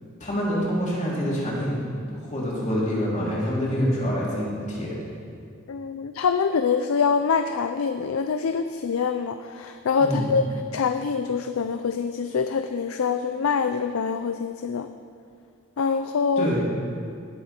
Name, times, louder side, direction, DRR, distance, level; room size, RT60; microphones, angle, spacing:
voice 1, 0.2-1.9 2.2-5.0 10.0-10.2 16.4-16.6, equal, 35° left, -6 dB, 3.2 m, -26 dB
voice 2, 5.7-10.4 10.7-14.9 15.8-16.5, left 5 dB, 85° left, 9 dB, 0.5 m, -25 dB
18.0 x 7.8 x 4.4 m, 2.3 s
head